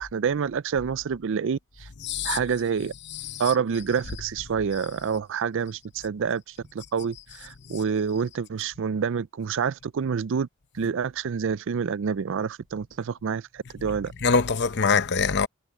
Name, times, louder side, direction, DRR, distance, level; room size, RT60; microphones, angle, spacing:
voice 1, 0.0-1.9 2.2-2.9 3.4-10.5 10.7-14.1, right 6 dB, 60° right, 0.4 m, -28 dB
voice 2, 2.0-2.4 3.1-3.5 4.1-4.2 14.2-15.5, left 5 dB, 50° left, 0.8 m, -24 dB
head